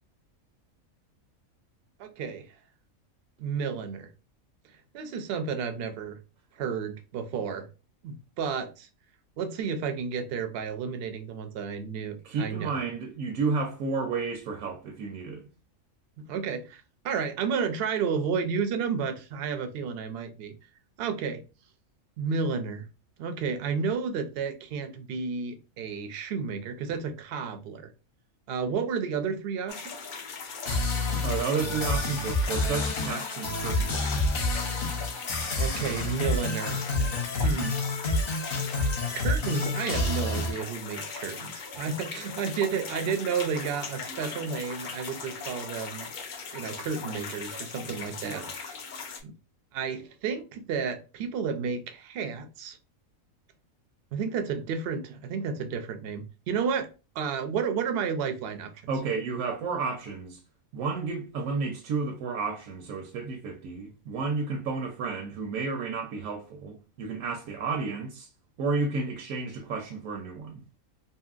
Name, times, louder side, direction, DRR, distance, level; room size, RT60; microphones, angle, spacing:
voice 1, 2.0-2.5 3.4-4.1 4.9-6.2 6.6-7.7 8.0-8.9 9.4-12.8 16.2-20.5 21.0-21.4 22.2-22.8 23.2-27.9 28.5-30.1 35.6-36.8 37.4-37.8 38.7-46.1 46.5-48.7 49.2-49.3 49.7-52.8 54.1-56.9 57.2-58.9, right 6 dB, 65° right, 0.6 m, -32 dB
voice 2, 12.2-15.5 31.2-34.2 47.9-48.0 48.2-48.5 58.9-60.4 60.7-68.3 68.6-70.6, right 4 dB, 80° right, 1.0 m, -32 dB
sound 1, 29.7-49.2, left 5 dB, 70° left, 0.4 m, -39 dB
sound 2, 30.7-40.5, left 2 dB, 50° left, 0.9 m, -28 dB
2.7 x 2.7 x 2.4 m
omnidirectional pair, 1.4 m